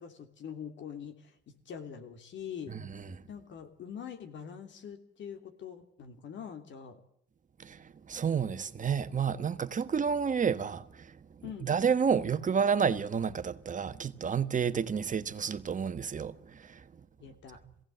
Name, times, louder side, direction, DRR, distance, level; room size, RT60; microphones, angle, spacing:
voice 1, 0.0-2.7 3.3-7.0 11.4-11.7 17.2-17.6, left 8 dB, 70° left, 3.1 m, -44 dB
voice 2, 2.7-3.2 7.6-11.2 11.6-16.9, right 6 dB, 40° right, 1.2 m, -30 dB
22.0 x 17.0 x 7.8 m
cardioid pair, 90°, 20 cm